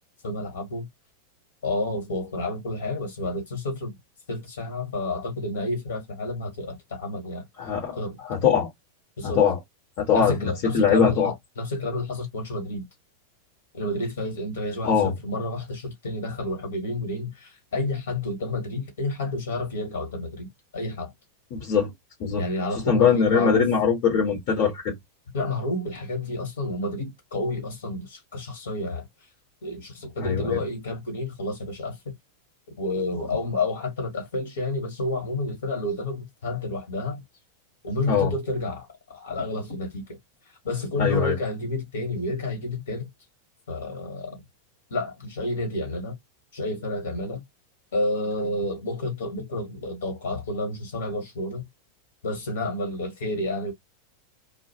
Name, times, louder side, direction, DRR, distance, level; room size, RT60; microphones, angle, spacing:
voice 1, 0.2-0.9 1.6-3.9 4.3-7.5 8.0-8.2 9.2-9.4 10.1-12.9 13.7-21.1 22.3-23.7 25.3-29.1 29.6-32.1 32.8-37.2 37.8-40.2 40.6-43.1 43.7-44.4 44.9-46.2 46.5-47.4 47.9-51.6 52.2-53.7, left 2 dB, 60° left, 1.3 m, -30 dB
voice 2, 7.6-8.0 8.2-8.7 9.2-9.6 10.0-11.3 14.8-15.1 21.5-21.9 22.2-22.4 22.9-24.9 30.2-30.6 38.1-38.3 41.0-41.4, left 6 dB, 45° left, 1.0 m, -22 dB
2.3 x 2.1 x 2.8 m
figure-of-eight pair, 90°, 0 cm